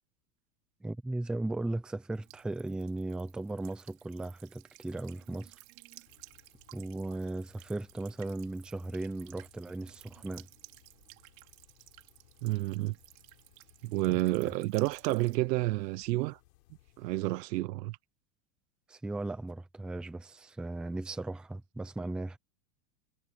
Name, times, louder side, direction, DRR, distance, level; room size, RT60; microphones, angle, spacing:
voice 1, 0.8-5.6 6.7-10.5 14.1-14.2 14.5-14.6 18.9-22.4, right 2 dB, ahead, 0.6 m, -37 dB
Buzz / Water tap faucet / Trickle dribble, 2.1-15.4, right 23 dB, 55° right, 3.4 m, -56 dB
sound 1, 6.0-17.4, left 16 dB, 80° left, 6.4 m, -64 dB
voice 2, 12.4-12.9 13.8-16.4 17.0-18.0, right 18 dB, 75° right, 1.0 m, -30 dB
supercardioid pair, 170°, 49 cm